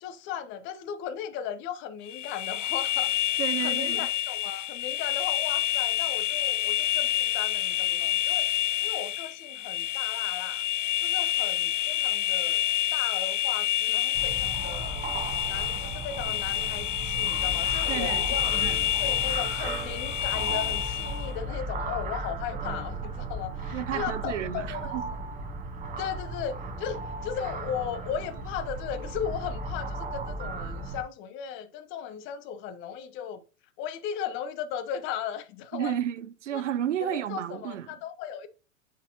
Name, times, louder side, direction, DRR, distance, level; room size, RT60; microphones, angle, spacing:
voice 1, 0.0-3.2 3.6-8.5 8.8-10.6 11.0-12.6 12.9-15.0 15.4-18.5 19.0-24.9 26.0-33.4 33.8-36.0 36.5-36.6 37.0-38.5, left 8 dB, 30° left, 0.7 m, -36 dB
sound 1, 2.1-21.3, left 13 dB, 65° left, 0.5 m, -28 dB
voice 2, 3.4-4.1 17.9-18.3 18.6-18.9 23.7-25.0 35.7-38.0, right 10 dB, 65° right, 0.6 m, -32 dB
sound 2, 14.1-31.0, right 2 dB, 20° right, 1.1 m, -35 dB
9.2 x 4.1 x 2.7 m
figure-of-eight pair, 95°, 39 cm